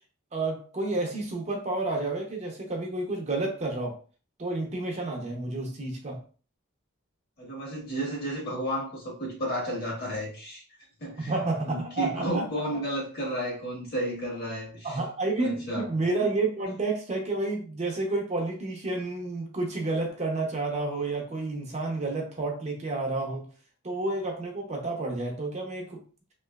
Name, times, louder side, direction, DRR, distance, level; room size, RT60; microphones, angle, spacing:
voice 1, 0.3-4.0 4.4-6.2 11.2-12.5 12.7-12.8 14.8-23.5 23.8-26.0, right 2 dB, 35° right, 1 dB, 0.6 m, -30 dB
voice 2, 7.4-10.6 11.0-15.0 15.4-16.0, right 1 dB, 50° left, -3 dB, 1.4 m, -32 dB
3.0 x 2.7 x 2.2 m, 0.38 s
head